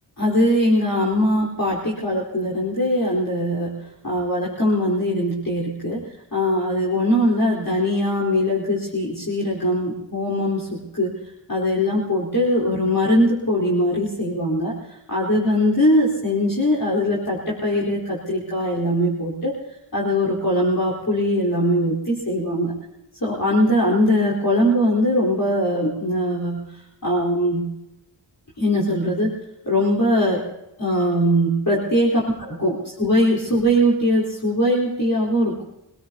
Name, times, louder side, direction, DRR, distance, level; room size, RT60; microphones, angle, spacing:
voice 1, 0.2-3.8 4.0-11.1 11.5-19.6 19.9-22.7 23.2-26.6 27.0-27.7 28.6-29.3 29.6-30.4 30.8-32.3 32.6-35.6, equal, 45° left, -5 dB, 4.0 m, -21 dB
25.5 x 18.0 x 2.9 m, 0.88 s
cardioid pair, 45°, 44 cm